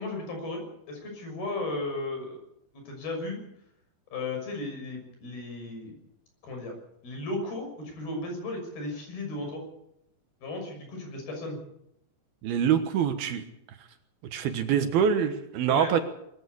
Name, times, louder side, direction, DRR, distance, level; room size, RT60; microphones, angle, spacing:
voice 1, 0.0-2.4 2.7-3.4 4.1-6.0 6.4-6.7 7.0-9.6 10.4-11.6 15.7-15.9, left 2 dB, 65° left, 3 dB, 8.2 m, -35 dB
voice 2, 12.4-13.4 14.3-16.0, right 8 dB, 70° right, 8 dB, 3.1 m, -25 dB
21.5 x 15.0 x 8.5 m, 0.78 s
omnidirectional pair, 4.8 m